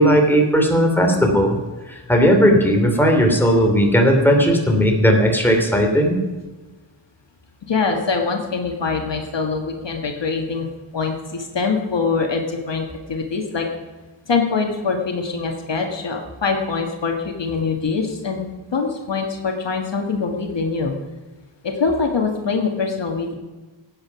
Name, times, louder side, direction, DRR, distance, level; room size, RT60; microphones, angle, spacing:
voice 1, 0.0-1.6 2.1-6.2, equal, 5° left, 1 dB, 2.9 m, -16 dB
voice 2, 7.7-10.7 10.9-13.7 14.3-18.4 18.7-20.9 21.6-23.3, left 4 dB, 60° left, 2 dB, 1.7 m, -23 dB
16.5 x 8.9 x 5.8 m, 1.2 s
wide cardioid pair, 85°, 48 cm